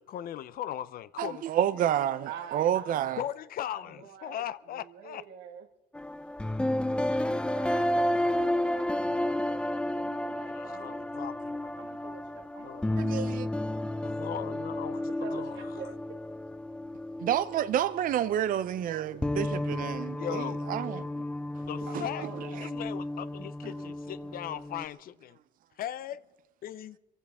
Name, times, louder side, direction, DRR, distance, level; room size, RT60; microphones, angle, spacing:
voice 1, 0.0-1.4 3.2-5.2 10.5-11.7 12.6-13.3 14.0-15.7 20.2-20.6 21.7-22.3 22.6-25.4 25.8-26.2 26.6-27.0, left 11 dB, 60° left, 0.7 m, -39 dB
voice 2, 1.2-3.2 13.0-13.5 17.2-21.1 21.9-22.1 22.6-22.7, right 10 dB, 55° right, 0.6 m, -29 dB
voice 3, 2.2-3.3 3.6-5.7 7.2-9.6 9.9-11.1 11.8-12.7 14.9-16.0 21.9-22.7, right 8 dB, 85° right, 1.7 m, -47 dB
sound 1, 5.9-18.6 18.9-24.9, left 1 dB, 5° left, 0.5 m, -32 dB
25.0 x 15.5 x 3.6 m
cardioid pair, 110°, 17 cm